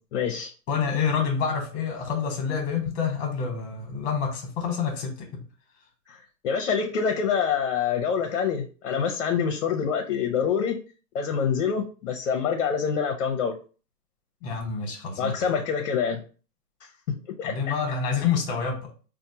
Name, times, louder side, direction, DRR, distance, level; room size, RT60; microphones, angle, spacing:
voice 1, 0.1-0.5 6.1-10.8 11.1-13.6 15.2-16.2 17.1-17.5, left 7 dB, 50° left, 4 dB, 0.7 m, -26 dB
voice 2, 0.7-5.4 14.4-15.3 17.4-18.8, left 6 dB, 25° left, 2 dB, 1.1 m, -27 dB
4.2 x 2.2 x 2.8 m, 0.37 s
hypercardioid pair, 125°, 48 cm